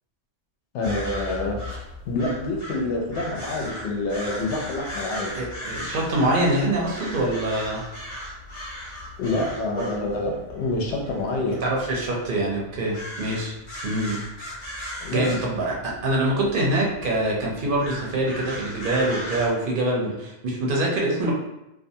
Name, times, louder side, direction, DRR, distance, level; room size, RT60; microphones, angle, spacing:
voice 1, 0.7-5.4 9.2-11.6 15.0-15.3, left 2 dB, 70° left, 0 dB, 0.9 m, -27 dB
sound 1, 0.8-19.5, left 1 dB, 35° left, 0.6 m, -37 dB
voice 2, 5.3-7.8 9.8-9.9 11.6-13.5 13.8-14.2 15.1-21.3, right 1 dB, 55° right, -3 dB, 0.7 m, -24 dB
2.5 x 2.3 x 2.6 m, 0.91 s
omnidirectional pair, 1.3 m